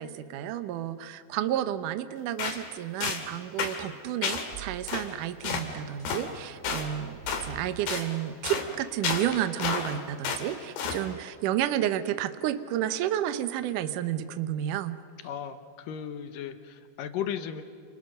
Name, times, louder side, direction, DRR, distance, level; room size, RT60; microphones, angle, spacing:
voice 1, 0.0-15.0, right 11 dB, 85° right, 11 dB, 1.8 m, -31 dB
sound 1, 2.4-2.6 3.0-3.3 3.6-3.8 4.2-4.5 4.9-5.1 5.4-5.7 6.1-6.3 6.6-6.9 7.3-7.5 7.9-8.1 8.4-8.7 9.0-10.0 10.3-10.5 10.8-11.0, left 6 dB, 85° left, 5.0 m, -31 dB
sound 2, 4.5-8.2, right 7 dB, 25° right, 2.4 m, -45 dB
voice 2, 15.2-17.6, left 9 dB, 70° left, 9 dB, 2.3 m, -35 dB
29.5 x 29.5 x 6.5 m, 2.2 s
omnidirectional pair, 5.1 m